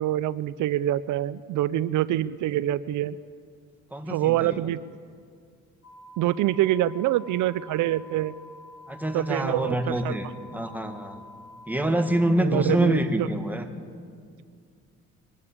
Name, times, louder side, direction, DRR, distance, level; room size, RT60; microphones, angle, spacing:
voice 1, 0.0-3.2 4.1-4.8 6.2-8.3 9.1-10.2 12.4-13.3, right 13 dB, 80° right, 17 dB, 0.5 m, -25 dB
voice 2, 3.9-4.7 8.9-10.3 10.5-11.2 11.7-13.7, right 1 dB, 5° right, 5 dB, 1.9 m, -26 dB
sound 1, 5.8-12.3, left 2 dB, 70° left, 2.3 m, -48 dB
22.5 x 14.0 x 8.6 m, 2.2 s
cardioid pair, 90°, 30 cm